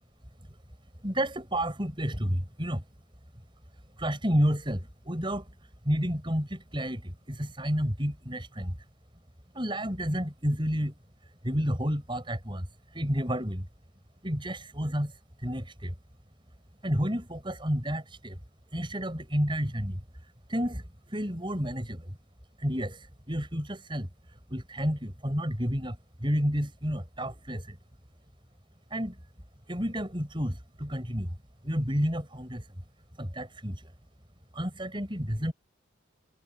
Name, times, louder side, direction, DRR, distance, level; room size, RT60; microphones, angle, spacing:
voice 1, 1.0-2.8 4.0-8.8 9.5-11.0 11.4-13.7 14.2-15.9 16.8-18.4 18.7-20.0 20.5-22.1 22.6-27.8 28.9-29.2 29.7-31.3 31.6-32.7 33.2-33.9 34.5-35.5, equal, 25° right, 6.9 m, -31 dB
head